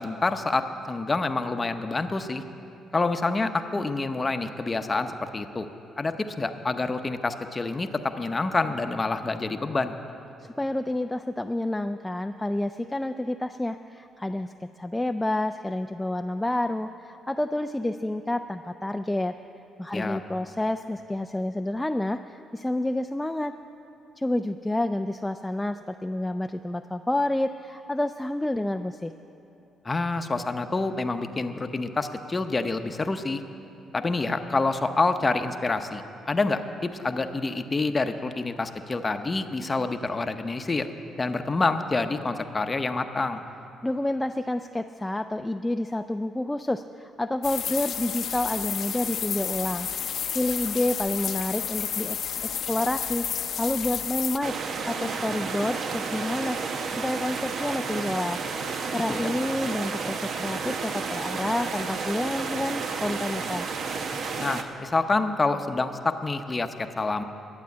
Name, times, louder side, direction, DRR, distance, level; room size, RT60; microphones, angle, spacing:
voice 1, 0.0-2.4 2.9-5.7 6.0-10.0 19.9-20.2 29.8-33.4 33.9-40.9 41.2-43.5 59.1-59.3 64.4-67.2, left 3 dB, 25° left, 8 dB, 0.7 m, -27 dB
voice 2, 10.4-19.4 19.8-23.5 24.2-29.1 43.8-49.9 50.3-54.6 54.9-56.6 57.0-58.4 58.9-63.7, left 1 dB, 10° left, 7 dB, 0.3 m, -29 dB
sound 1, 47.4-54.4, left 8 dB, 60° left, 0.6 m, -31 dB
sound 2, 54.4-64.6, right 5 dB, 65° right, 0.8 m, -31 dB
12.0 x 8.9 x 8.4 m, 3.0 s
cardioid pair, 90°, 0 cm